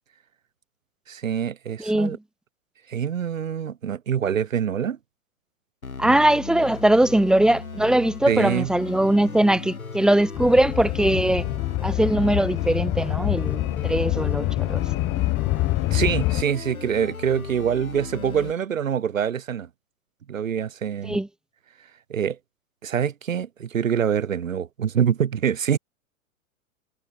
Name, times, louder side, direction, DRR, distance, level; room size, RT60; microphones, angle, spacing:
voice 1, 1.1-2.2 2.9-5.0 6.1-6.2 8.3-8.7 15.9-19.7 20.3-21.2 22.1-22.4 22.8-25.8, right 8 dB, 65° right, 3.0 m, -25 dB
voice 2, 1.8-2.2 6.0-11.5 11.8-14.8 21.0-21.3, right 1 dB, ahead, 0.8 m, -21 dB
sound 1, 5.8-18.5, left 4 dB, 85° left, 1.6 m, -37 dB
sound 2, 10.3-16.4, left 19 dB, 30° left, 2.3 m, -25 dB
figure-of-eight pair, 100°, 42 cm